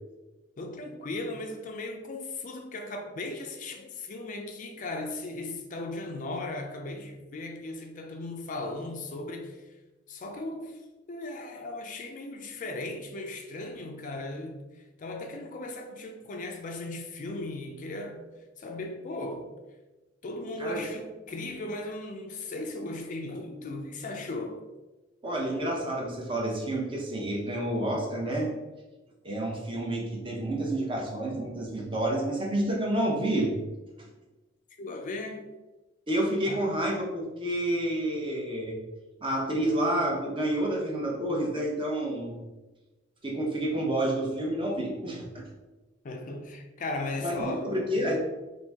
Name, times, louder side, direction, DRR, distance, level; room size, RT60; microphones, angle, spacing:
voice 1, 0.6-9.6 10.1-10.8 11.1-18.2 18.6-19.5 20.2-24.6 34.8-35.5 36.5-36.7 46.0-48.1, left 2 dB, 45° left, 0.4 m, -37 dB
voice 2, 25.2-28.5 29.2-33.5 36.1-38.8 39.2-42.3 43.2-45.5 47.2-48.2, right 1 dB, 25° right, 0.9 m, -29 dB
4.5 x 2.7 x 3.4 m
head